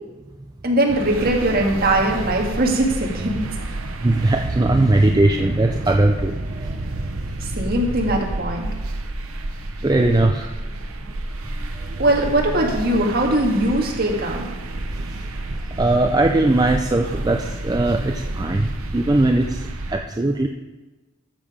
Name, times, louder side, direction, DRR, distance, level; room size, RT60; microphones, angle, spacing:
voice 1, 0.6-3.5 7.4-8.7 12.0-14.5, right 1 dB, 45° right, 0 dB, 1.9 m, -20 dB
sound 1, 0.9-20.0, right 2 dB, 90° right, 0.9 m, -30 dB
voice 2, 4.0-6.8 9.8-10.5 11.6-11.7 14.9-15.3 15.8-19.6 19.9-20.5, right 2 dB, 20° right, 4 dB, 0.4 m, -19 dB
13.0 x 7.2 x 5.0 m, 1.2 s
head